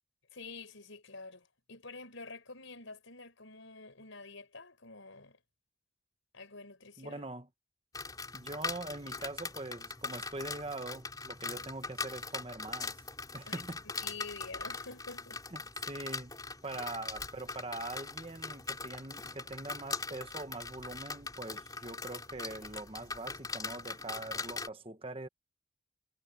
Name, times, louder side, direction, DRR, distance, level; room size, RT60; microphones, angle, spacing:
voice 1, 0.3-5.4 6.3-7.2 13.5-13.6 14.0-15.4 16.7-16.9, left 3 dB, 75° left, 4.8 m, -48 dB
voice 2, 7.0-7.5 8.3-13.0 13.3-13.8 15.5-15.6 15.9-16.3 16.6-25.3, right 2 dB, 25° right, 1.3 m, -43 dB
sound 1, 7.9-24.7, left 4 dB, 20° left, 4.5 m, -41 dB
head